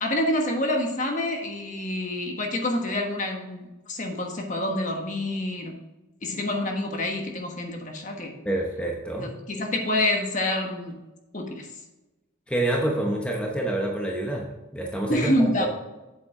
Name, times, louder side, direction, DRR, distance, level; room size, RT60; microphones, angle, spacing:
voice 1, 0.0-5.7 6.2-8.4 9.1-11.0 11.3-11.7 15.1-15.7, left 1 dB, 40° left, 2 dB, 1.4 m, -27 dB
voice 2, 8.4-9.3 12.5-15.7, right 1 dB, 5° left, -1 dB, 0.9 m, -27 dB
8.2 x 7.9 x 3.7 m, 1.1 s
head